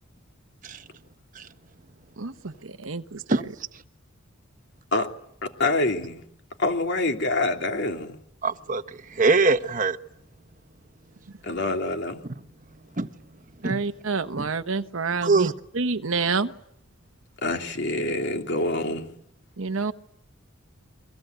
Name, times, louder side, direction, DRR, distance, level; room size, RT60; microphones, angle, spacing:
voice 1, 2.2-3.5 13.6-16.5 19.6-19.9, right 4 dB, 70° right, 1.0 m, -28 dB
voice 2, 5.4-6.2 6.6-8.2 11.4-12.2 17.4-19.1, left 2 dB, 55° left, 2.9 m, -26 dB
voice 3, 8.4-10.0 13.0-13.1 13.6-13.8 14.4-14.5 15.2-15.5, right 3 dB, 40° right, 1.1 m, -23 dB
29.5 x 23.5 x 8.1 m
head